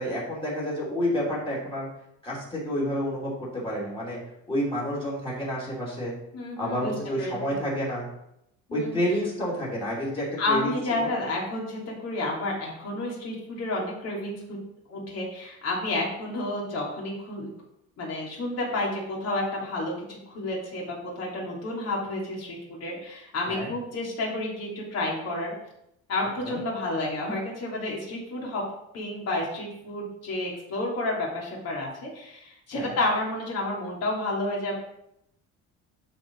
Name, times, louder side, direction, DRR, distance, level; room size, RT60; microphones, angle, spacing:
voice 1, 0.0-1.9 2.2-4.2 4.5-6.1 6.6-8.1 8.7-11.1 23.5-23.7 26.4-26.6 32.7-33.0, equal, 15° left, -6 dB, 3.1 m, -29 dB
voice 2, 6.3-6.9 7.2-7.3 8.7-9.0 10.4-14.6 14.9-17.5 18.0-25.5 26.1-28.6 28.9-34.8, left 2 dB, 50° left, -2 dB, 3.0 m, -30 dB
11.5 x 4.4 x 4.6 m, 0.79 s
cardioid pair, 170°, 33 cm